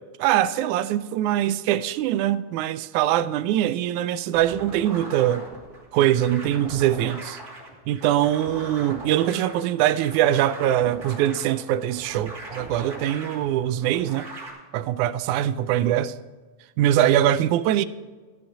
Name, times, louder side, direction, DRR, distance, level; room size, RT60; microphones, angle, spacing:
voice 1, 0.2-5.4 5.9-7.4 7.9-14.3 14.7-16.1 16.8-17.9, right 12 dB, 85° right, 2.0 m, -22 dB
sound 1, 4.3-14.5, right 2 dB, 30° right, 3.0 m, -40 dB
13.5 x 10.5 x 4.8 m
omnidirectional pair, 3.4 m